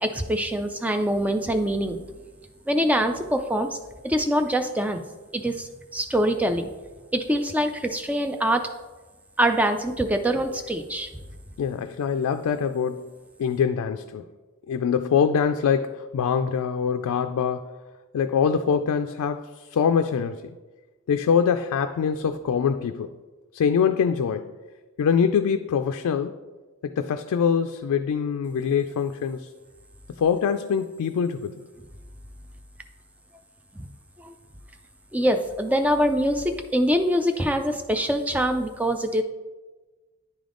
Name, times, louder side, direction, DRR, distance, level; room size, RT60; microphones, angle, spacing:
voice 1, 0.0-2.0 2.7-3.8 4.0-5.0 5.3-6.7 7.1-8.6 9.4-11.1 33.8-33.9 34.2-34.3 35.1-39.2, equal, 5° right, 6 dB, 0.3 m, -24 dB
voice 2, 11.6-13.1 13.4-14.2 14.7-17.7 18.1-20.5 21.1-23.1 23.5-24.5 25.0-26.4 26.8-29.5 30.2-31.7, left 7 dB, 85° left, 7 dB, 0.3 m, -24 dB
9.6 x 3.5 x 3.8 m, 1.2 s
head